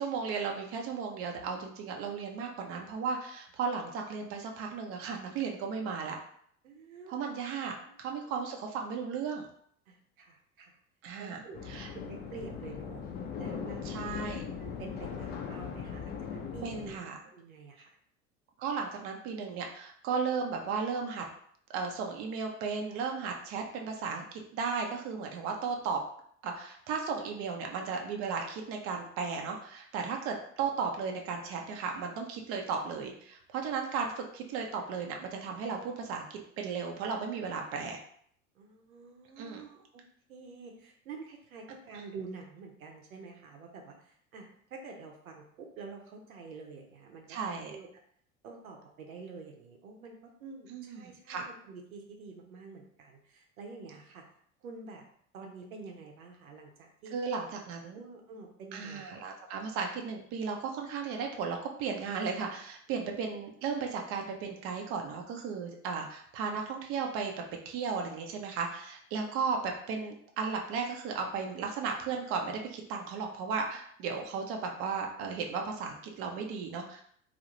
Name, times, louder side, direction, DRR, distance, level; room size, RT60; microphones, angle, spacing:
voice 1, 0.0-6.2 7.1-7.7 8.0-9.5 11.0-11.4 11.7-11.9 13.8-14.5 16.6-17.2 18.6-21.2 21.7-26.0 26.4-38.0 39.4-39.6 47.3-47.8 50.7-51.5 57.1-58.0 58.7-67.3 67.7-77.0, right 5 dB, 35° right, 2 dB, 0.4 m, -35 dB
voice 2, 6.6-7.3 7.7-8.3 9.9-10.7 11.2-13.0 13.4-13.8 14.1-18.0 38.6-40.0 40.3-47.9 48.4-54.2 54.6-55.0 55.3-57.1 57.9-59.0, right 4 dB, 75° right, 2 dB, 0.6 m, -48 dB
sound 1, 11.5-16.9, left 6 dB, 25° left, 0.4 m, -39 dB
2.3 x 2.0 x 2.9 m, 0.63 s
figure-of-eight pair, 75°, 42 cm